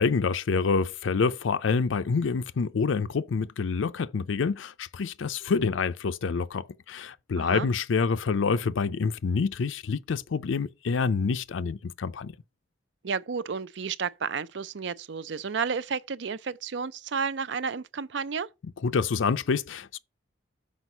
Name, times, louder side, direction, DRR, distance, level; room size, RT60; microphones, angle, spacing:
voice 1, 0.0-12.3 18.8-20.0, left 5 dB, 85° left, 0.5 m, -27 dB
voice 2, 7.4-7.7 13.0-18.5, right 5 dB, 65° right, 0.5 m, -32 dB
6.2 x 5.0 x 5.4 m
head